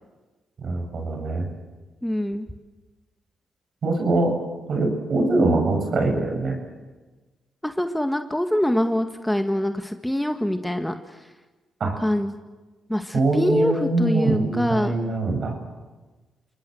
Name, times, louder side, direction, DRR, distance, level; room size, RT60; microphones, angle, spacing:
voice 1, 0.6-1.5 3.8-4.4 4.7-6.6 11.8-12.0 13.1-15.6, right 2 dB, 60° right, 3 dB, 7.2 m, -23 dB
voice 2, 2.0-2.5 7.6-11.2 12.0-12.3 12.9-14.9, left 1 dB, 5° left, 7 dB, 1.9 m, -24 dB
28.5 x 20.0 x 8.0 m, 1.3 s
supercardioid pair, 55°, 0 cm